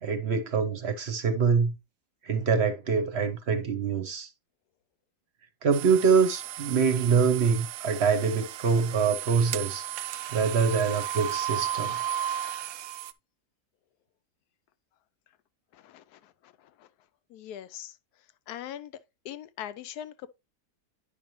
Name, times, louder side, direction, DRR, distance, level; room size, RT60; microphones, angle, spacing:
voice 1, 0.0-1.7 2.2-4.3 5.6-9.8 10.3-12.0, right 6 dB, 50° right, 1.0 m, -25 dB
sound 1, 5.7-13.1, right 11 dB, 70° right, 0.9 m, -34 dB
voice 2, 15.7-16.2 16.8-16.9 17.3-17.9 18.5-18.9 19.2-20.3, left 11 dB, 75° left, 1.1 m, -40 dB
10.0 x 5.3 x 3.0 m
omnidirectional pair, 1.7 m